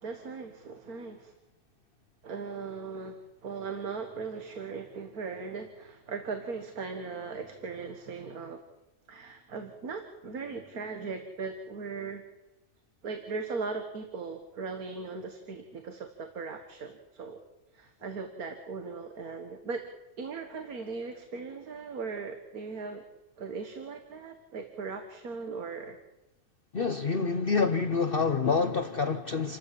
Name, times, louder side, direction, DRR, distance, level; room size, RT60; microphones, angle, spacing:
voice 1, 0.0-1.3 2.2-8.6 9.1-12.2 13.0-17.4 17.7-19.8 20.2-23.0 23.4-26.0, right 4 dB, 90° right, 2.0 m, -38 dB
voice 2, 26.7-29.6, left 4 dB, 45° left, 1.0 m, -27 dB
28.0 x 13.0 x 8.5 m
omnidirectional pair, 1.5 m